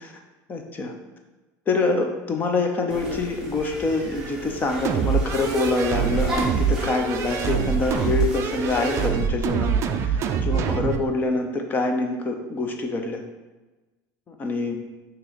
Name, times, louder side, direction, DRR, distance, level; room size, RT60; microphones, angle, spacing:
voice 1, 0.5-0.9 1.7-9.7 10.0-13.2 14.3-14.8, left 3 dB, 25° left, 4 dB, 0.6 m, -25 dB
sound 1, 2.9-9.1, right 1 dB, 5° right, 1.2 m, -34 dB
sound 2, 4.8-11.0, right 7 dB, 35° right, 0.4 m, -25 dB
6.2 x 3.0 x 5.1 m, 1.2 s
cardioid pair, 155°, 8 cm